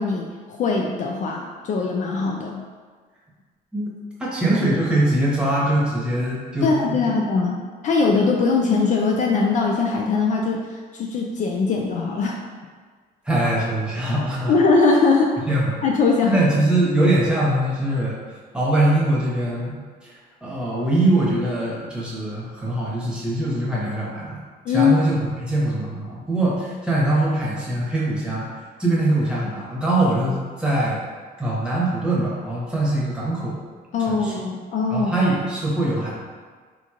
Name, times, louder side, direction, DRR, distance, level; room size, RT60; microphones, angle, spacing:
voice 1, 0.0-2.7 6.6-10.6 10.9-12.4 14.5-15.3 15.8-16.3 24.7-24.9 33.9-35.1, left 4 dB, 45° left, 0 dB, 0.4 m, -21 dB
voice 2, 4.2-6.7 13.2-14.6 15.5-15.8 16.3-18.2 18.5-19.7 20.0-20.1 20.4-24.4 24.7-28.5 28.8-31.0 31.4-33.6 34.1-34.3 34.9-36.1, right 1 dB, 5° right, -7 dB, 1.0 m, -22 dB
3.8 x 2.9 x 2.4 m, 1.5 s
cardioid pair, 110°, 17 cm